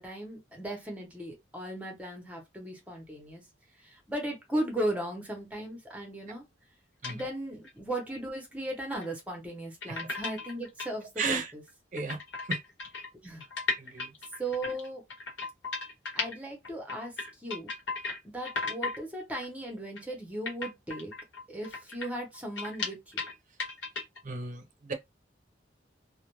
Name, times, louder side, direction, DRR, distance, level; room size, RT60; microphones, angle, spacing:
voice 1, 0.0-3.4 3.8-6.4 7.1-11.6 13.2-13.5 14.4-15.0 16.1-17.7 18.2-21.1 21.5-23.2, right 1 dB, 10° right, 0.8 m, -37 dB
sound 1, 7.0-7.2 7.6-7.7 8.9-9.1 9.8-10.9 11.4-11.5 11.7-11.8 12.0-16.4 16.6-18.2 18.5-19.0 19.3-19.5 20.0-20.1 20.5-23.3 23.6-24.2, left 4 dB, 80° left, 1.0 m, -35 dB
voice 2, 11.2-11.5 11.9-12.2 12.5-12.6 13.8-14.1 24.2-24.9, right 4 dB, 45° right, 0.6 m, -34 dB
2.4 x 2.1 x 3.0 m
head